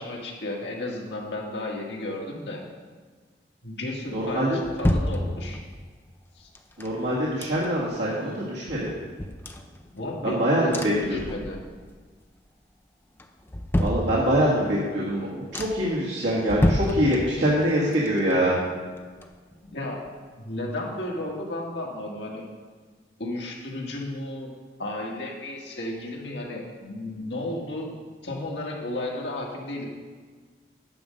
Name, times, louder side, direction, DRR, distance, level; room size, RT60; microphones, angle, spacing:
voice 1, 0.0-2.6 3.6-5.6 6.4-6.5 9.9-11.6 15.0-15.1 19.6-20.1 20.4-22.4 23.2-24.5 24.8-27.9 28.2-29.9, left 1 dB, 80° left, -1 dB, 1.7 m, -33 dB
sound 1, 4.1-5.8 6.5-8.0 8.3-8.4 8.7-10.3 10.7-11.9 12.2-12.7 13.2-14.6 15.1-15.2 15.5-16.0 16.4-17.6 17.9-19.7 20.1-20.2, left 1 dB, 15° left, 0.4 m, -30 dB
voice 2, 4.1-4.6 6.8-8.9 10.2-11.3 13.8-18.6, equal, 90° right, -7 dB, 1.8 m, -24 dB
9.8 x 5.1 x 6.6 m, 1.5 s
head